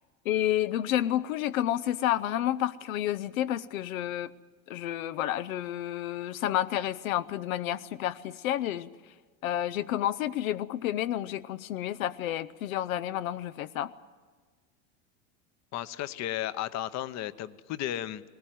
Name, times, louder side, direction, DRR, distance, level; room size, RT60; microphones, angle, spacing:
voice 1, 0.3-4.3 4.7-8.9 9.4-13.9, left 12 dB, 85° left, 14 dB, 0.7 m, -30 dB
voice 2, 15.7-18.2, left 12 dB, 40° left, 15 dB, 0.9 m, -34 dB
19.0 x 19.0 x 9.2 m, 1.5 s
hypercardioid pair, 105°, 40 cm